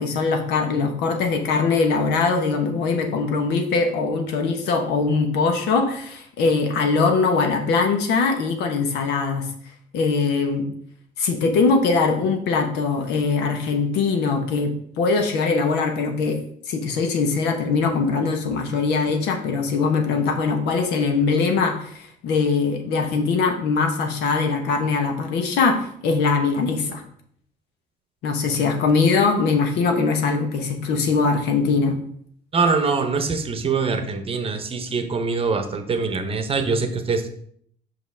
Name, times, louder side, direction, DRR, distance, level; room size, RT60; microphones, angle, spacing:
voice 1, 0.0-9.5 9.9-10.7 11.2-16.4 16.6-27.0 28.2-32.0, left 4 dB, 85° left, 4 dB, 1.1 m, -21 dB
voice 2, 32.5-37.3, right 4 dB, 35° right, 8 dB, 0.8 m, -23 dB
5.6 x 5.2 x 3.4 m, 0.64 s
cardioid pair, 110°, 17 cm